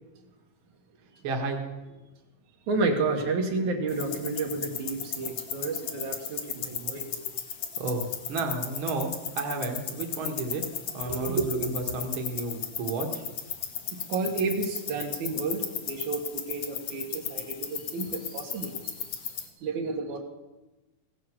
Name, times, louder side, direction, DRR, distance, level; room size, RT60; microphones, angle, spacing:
voice 1, 1.2-1.6 7.8-13.2, right 3 dB, 50° right, 3 dB, 2.1 m, -32 dB
voice 2, 2.7-7.1 11.1-12.0 14.1-19.3 19.6-20.2, right 3 dB, 75° right, 3 dB, 3.0 m, -31 dB
sound 1, 3.9-19.5, left 8 dB, 60° left, 2.1 m, -36 dB
16.5 x 9.5 x 7.3 m, 1.1 s
omnidirectional pair, 3.5 m